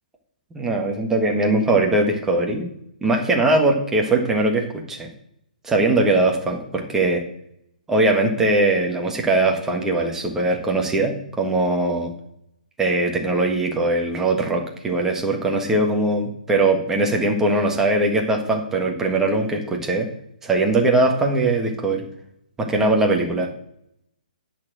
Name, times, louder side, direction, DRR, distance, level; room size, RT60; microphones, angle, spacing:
voice 1, 0.5-2.7 3.0-5.1 5.6-7.2 7.9-12.1 12.8-20.1 20.4-22.0 22.6-23.5, right 2 dB, 10° right, 2 dB, 1.7 m, -21 dB
10.5 x 4.5 x 7.5 m, 0.75 s
figure-of-eight pair, 130°, 5 cm